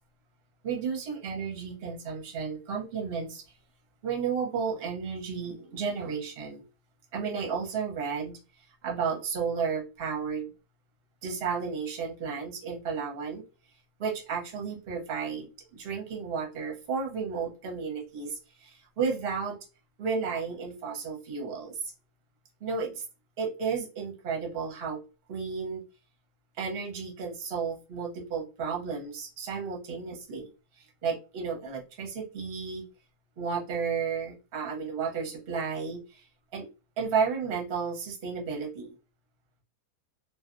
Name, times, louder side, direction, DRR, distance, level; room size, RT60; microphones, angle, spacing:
voice 1, 0.6-3.4 4.0-6.6 7.1-8.4 8.8-10.5 11.2-13.4 14.0-15.5 15.7-19.6 20.0-21.9 22.6-23.0 23.4-25.0 25.3-25.8 26.6-30.5 30.8-32.8 33.4-36.2 36.5-36.7 37.0-38.9, right 5 dB, 45° right, 0.9 m, -33 dB
2.6 x 2.3 x 2.4 m
omnidirectional pair, 1.6 m